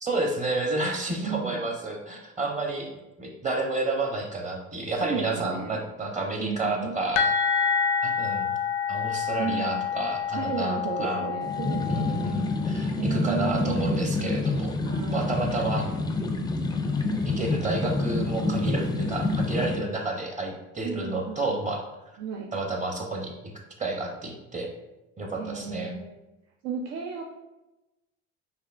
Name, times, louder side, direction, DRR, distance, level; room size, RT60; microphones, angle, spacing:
voice 1, 0.0-2.9 3.2-7.3 8.0-8.5 8.9-11.2 11.9-14.7 15.1-15.9 17.2-21.8 22.5-23.5 23.8-24.7 25.2-25.9, right 2 dB, 25° right, 2 dB, 0.8 m, -30 dB
voice 2, 1.1-1.6 5.0-5.8 6.4-6.9 9.4-9.9 10.3-12.2 12.9-13.8 14.8-15.4 20.8-21.6 22.2-22.5 25.4-26.2 26.6-27.2, right 6 dB, 75° right, 1 dB, 0.5 m, -33 dB
sound 1, 7.2-12.8, left 6 dB, 75° left, 0.5 m, -28 dB
sound 2, 11.4-19.8, left 2 dB, 15° left, 0.4 m, -27 dB
5.3 x 2.2 x 2.5 m, 0.98 s
supercardioid pair, 90°, 30 cm